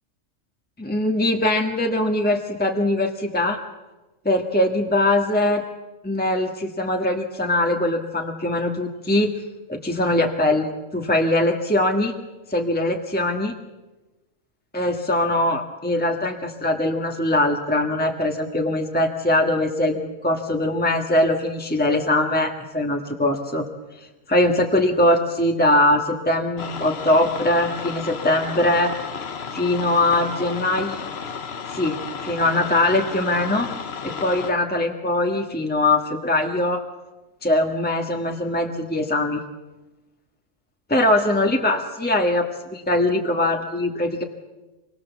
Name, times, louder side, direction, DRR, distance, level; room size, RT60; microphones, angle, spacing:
voice 1, 0.8-3.6 4.2-5.6 6.0-9.3 9.7-12.1 12.5-13.6 14.7-23.6 24.0-28.9 29.5-31.0 31.7-33.7 34.0-36.8 37.4-39.4 40.9-44.2, left 1 dB, 5° left, 2 dB, 1.6 m, -22 dB
sound 1, 26.6-34.5, left 6 dB, 55° left, 1.2 m, -33 dB
26.0 x 22.0 x 7.3 m, 1.1 s
omnidirectional pair, 1.4 m